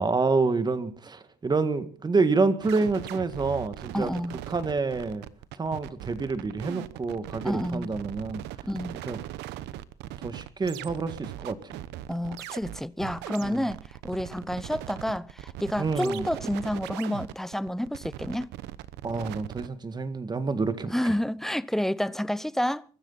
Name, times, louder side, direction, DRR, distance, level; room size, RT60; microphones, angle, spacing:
voice 1, 0.0-4.1 4.5-5.2 5.5-8.4 9.1-9.2 10.2-11.8 13.4-13.7 15.8-16.2 19.0-20.9, right 4 dB, 25° right, 1.8 m, -28 dB
sound 1, 2.6-19.7, right 14 dB, 90° right, 0.9 m, -40 dB
voice 2, 3.9-4.4 7.4-7.9 8.7-9.0 12.1-18.5 20.9-22.8, equal, ahead, 0.7 m, -29 dB
23.5 x 13.0 x 4.1 m
cardioid pair, 110°, 17 cm